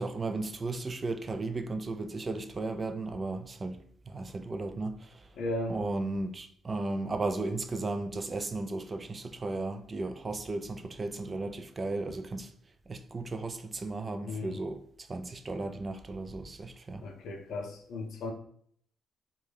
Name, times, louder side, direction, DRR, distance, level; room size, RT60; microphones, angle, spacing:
voice 1, 0.0-5.3 5.7-12.5 12.9-17.0, right 2 dB, 30° right, 0.3 m, -35 dB
voice 2, 5.3-5.8 14.2-14.6 17.0-18.3, left 2 dB, 70° left, 0.5 m, -36 dB
2.5 x 2.2 x 3.3 m
cardioid pair, 90°, 0 cm